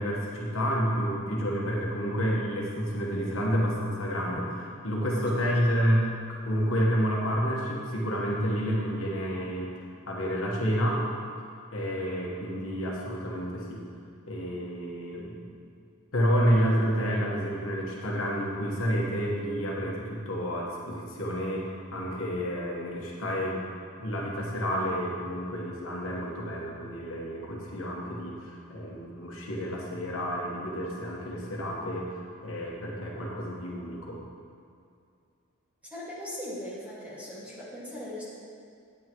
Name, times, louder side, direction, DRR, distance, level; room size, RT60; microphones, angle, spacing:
voice 1, 0.0-9.7 10.1-11.0 11.7-13.9 14.3-15.4 16.1-23.6 24.0-34.2, equal, 65° left, -3 dB, 1.3 m, -29 dB
voice 2, 5.3-5.8 35.8-38.2, left 1 dB, 5° right, -9 dB, 1.8 m, -40 dB
9.3 x 8.9 x 3.0 m, 2.4 s
head